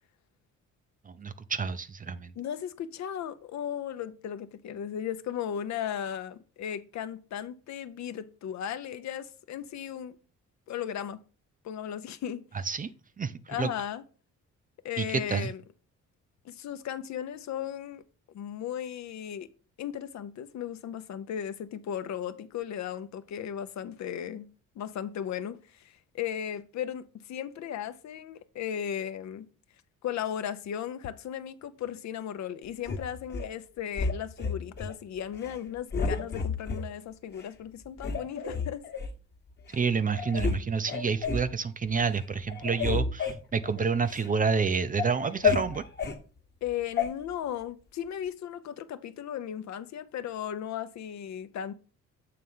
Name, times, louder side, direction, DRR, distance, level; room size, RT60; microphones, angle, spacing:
voice 1, 1.1-2.3 12.7-12.9 13.2-13.3 13.6-13.7 15.0-15.5 39.7-45.8, right 5 dB, 30° right, 0.5 m, -29 dB
voice 2, 2.4-10.2 10.7-11.2 11.6-12.4 13.5-14.0 14.8-15.6 16.4-18.0 18.3-19.5 19.8-24.5 24.8-29.5 30.0-38.8 46.6-51.7, left 9 dB, 65° left, 0.7 m, -36 dB
sound 1, 32.8-33.5 34.0-34.9 35.3-35.6 35.9-36.8 37.4-37.5 38.0-39.1 39.7-39.8 40.1-40.6 40.9-41.5 41.9-42.2 42.5-44.3 44.7-46.2 47.0-47.1, left 5 dB, 35° left, 1.2 m, -31 dB
7.7 x 3.3 x 5.5 m
cardioid pair, 90°, 30 cm